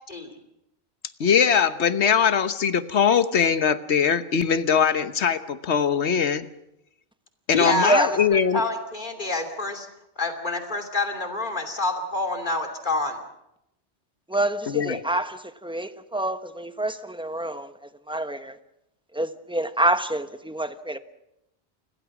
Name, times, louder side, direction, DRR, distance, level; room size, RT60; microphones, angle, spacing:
voice 1, 0.1-0.4 7.5-9.9 10.2-13.2, left 2 dB, 45° left, 3.0 m, -27 dB
voice 2, 1.2-6.5 7.5-8.6 14.7-15.0, left 7 dB, 70° left, 1.4 m, -21 dB
voice 3, 14.3-18.6 19.1-21.0, right 1 dB, 5° right, 1.0 m, -27 dB
29.5 x 21.5 x 6.1 m
omnidirectional pair, 1.2 m